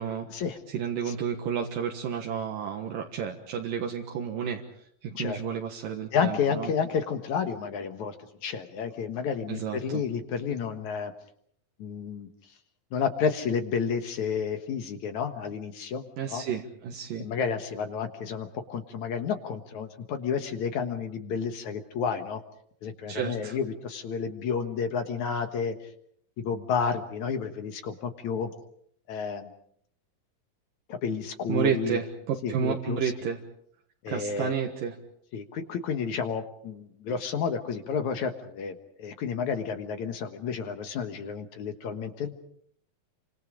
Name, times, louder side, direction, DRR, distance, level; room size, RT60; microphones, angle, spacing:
voice 1, 0.7-4.6 5.0-6.7 9.5-10.0 16.2-17.3 23.1-23.6 31.5-33.4 34.1-34.9, right 7 dB, 75° right, 2 dB, 3.1 m, -31 dB
voice 2, 6.1-8.2 8.4-11.1 11.8-12.3 12.9-16.4 17.2-22.4 22.8-25.9 26.4-28.5 29.1-29.5 30.9-32.0 32.4-33.1 34.0-34.5 35.3-42.3, left 6 dB, 60° left, 7 dB, 2.6 m, -31 dB
29.5 x 25.5 x 5.1 m, 0.66 s
omnidirectional pair, 4.1 m